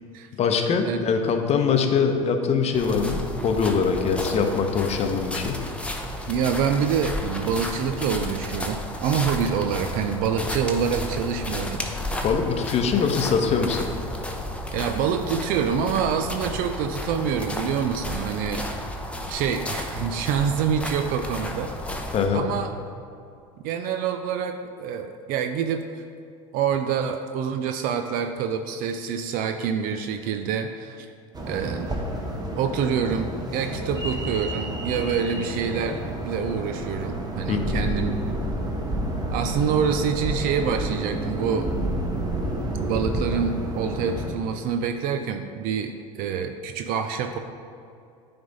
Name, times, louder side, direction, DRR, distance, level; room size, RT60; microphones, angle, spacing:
voice 1, 0.4-5.6 12.2-13.9 22.1-22.4 37.5-37.8, left 5 dB, 40° left, 5 dB, 0.8 m, -23 dB
sound 1, 2.7-22.3, left 1 dB, 5° left, 0.8 m, -32 dB
voice 2, 6.3-12.2 14.7-18.7 19.3-22.1 22.3-22.7 23.6-26.0 26.5-31.1 31.5-31.9 32.6-38.2 39.3-41.7 42.8-45.9 46.2-47.4, right 7 dB, 55° right, 7 dB, 0.4 m, -26 dB
sound 2, 31.3-44.3, right 1 dB, 20° right, 1.1 m, -30 dB
9.3 x 3.5 x 4.0 m, 2.5 s
hypercardioid pair, 80°, 18 cm